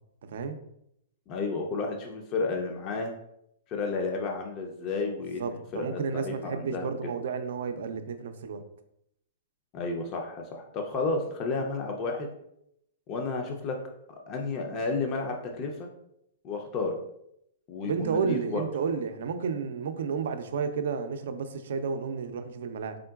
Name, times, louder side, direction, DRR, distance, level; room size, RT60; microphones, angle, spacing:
voice 1, 1.3-3.1 3.7-6.9 9.7-12.3 13.1-13.8 14.3-15.9 16.4-17.0 17.7-18.7, left 3 dB, 30° left, 2 dB, 0.5 m, -32 dB
voice 2, 5.4-8.6 17.8-23.0, right 5 dB, 70° right, 8 dB, 0.4 m, -31 dB
3.7 x 3.6 x 2.3 m, 0.77 s
hypercardioid pair, 140°, 0 cm